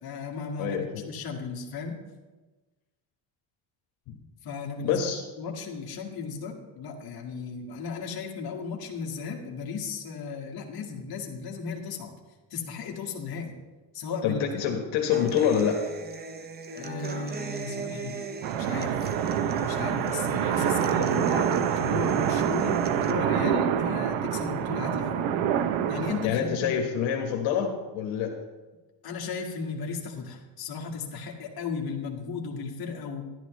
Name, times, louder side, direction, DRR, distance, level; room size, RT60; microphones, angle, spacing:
voice 1, 0.0-2.0 4.4-5.1 5.4-12.1 12.5-13.5 13.9-14.7 16.7-18.2 18.5-19.0 19.6-25.3 25.9-26.7 29.0-33.2, left 5 dB, 50° left, 0 dB, 1.8 m, -35 dB
voice 2, 0.6-1.0 4.1-4.2 4.8-5.2 14.2-15.9 26.2-28.3, left 8 dB, 75° left, 2 dB, 1.5 m, -26 dB
Human voice / Acoustic guitar, 15.1-23.1, right 4 dB, 20° right, 0.6 m, -38 dB
sound 1, 18.4-26.3, right 9 dB, 75° right, 0.8 m, -26 dB
12.5 x 11.0 x 3.1 m, 1.2 s
cardioid pair, 130°, 47 cm